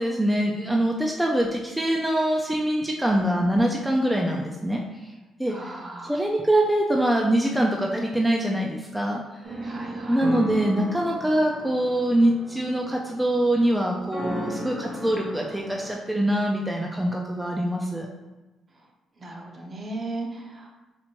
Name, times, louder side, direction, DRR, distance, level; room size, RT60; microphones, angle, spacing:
voice 1, 0.0-4.8 5.4-5.5 6.0-9.2 10.1-18.1, right 1 dB, 10° right, -1 dB, 0.4 m, -24 dB
voice 2, 5.5-6.2 9.6-10.3 19.2-20.7, right 2 dB, 35° right, 1 dB, 0.7 m, -36 dB
sound 1, 9.4-15.9, equal, 60° right, 1.3 m, -36 dB
4.3 x 2.5 x 2.9 m, 1.1 s
cardioid pair, 90°, 0 cm